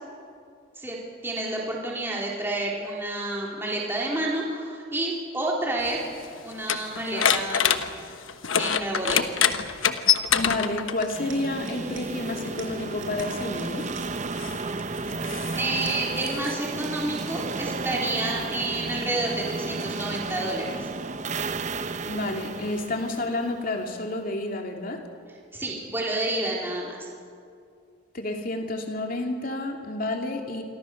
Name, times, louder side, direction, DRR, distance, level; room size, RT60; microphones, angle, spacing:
voice 1, 1.2-6.0 6.4-7.8 8.6-9.2 15.6-20.9 25.5-27.1, right 1 dB, 10° right, -3 dB, 3.9 m, -29 dB
sound 1, 5.8-11.2 12.3-12.4 13.2-16.5, left 8 dB, 90° left, 1.2 m, -26 dB
sound 2, 7.3-7.8 9.0-9.7 11.0-14.1 15.5-16.0, right 6 dB, 85° right, 4.8 m, -46 dB
voice 2, 10.3-13.9 22.1-25.0 28.1-30.6, left 2 dB, 45° left, 2 dB, 2.7 m, -30 dB
sound 3, 11.1-24.0, right 3 dB, 35° right, 0.8 m, -33 dB
28.0 x 24.5 x 6.6 m, 2.3 s
head